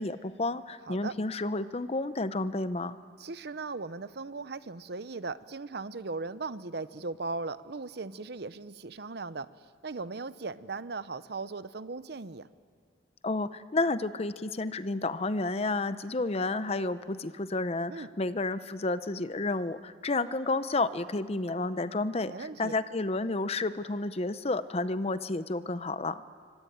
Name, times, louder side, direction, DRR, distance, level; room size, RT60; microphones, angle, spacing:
voice 1, 0.0-3.0 13.2-26.2, left 2 dB, 35° left, 13 dB, 0.7 m, -31 dB
voice 2, 3.2-9.5 9.8-12.5 17.9-18.1 22.3-22.8, right 3 dB, 60° right, 14 dB, 0.8 m, -38 dB
26.0 x 25.0 x 9.3 m, 2.2 s
head